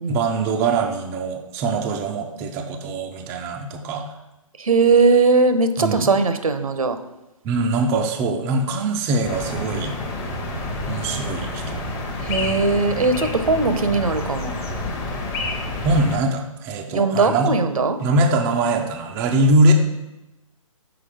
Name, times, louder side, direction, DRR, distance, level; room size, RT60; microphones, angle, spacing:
voice 1, 0.1-4.1 5.8-6.1 7.4-10.0 10.9-11.8 15.8-17.5 18.0-19.7, right 2 dB, 15° right, 2 dB, 0.4 m, -22 dB
voice 2, 4.6-7.0 12.2-14.5 16.9-18.0, right 3 dB, 85° right, 9 dB, 0.8 m, -19 dB
sound 1, 9.2-16.2, left 2 dB, 20° left, 0.8 m, -29 dB
6.0 x 4.8 x 4.9 m, 0.98 s
hypercardioid pair, 145°, 18 cm